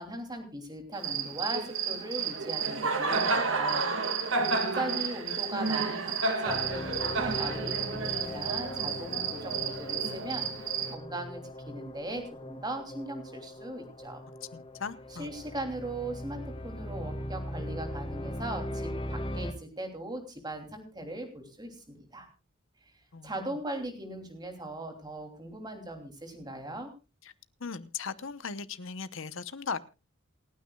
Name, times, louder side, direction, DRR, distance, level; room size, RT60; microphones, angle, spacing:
voice 1, 0.0-3.9 4.1-14.2 15.1-22.3 23.2-26.9, right 1 dB, 20° right, 2.9 m, -39 dB
Cricket, 0.9-11.0, right 4 dB, 65° right, 1.9 m, -31 dB
voice 2, 4.4-5.0 14.5-15.3 23.1-23.6 27.6-29.8, left 5 dB, 65° left, 0.9 m, -38 dB
sound 1, 6.5-19.5, left 1 dB, 25° left, 1.4 m, -39 dB
28.0 x 9.5 x 2.3 m
head